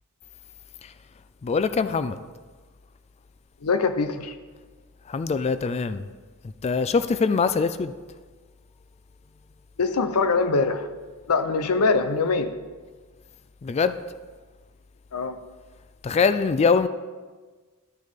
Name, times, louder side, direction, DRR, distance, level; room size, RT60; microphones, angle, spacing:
voice 1, 1.4-2.2 5.1-6.0 6.6-7.9 13.6-14.0 16.0-16.9, left 5 dB, 30° left, 12 dB, 0.3 m, -23 dB
voice 2, 3.6-4.3 9.8-10.9 11.3-12.5 15.1-15.4, left 4 dB, 90° left, 10 dB, 0.6 m, -23 dB
12.0 x 6.5 x 3.6 m, 1.4 s
head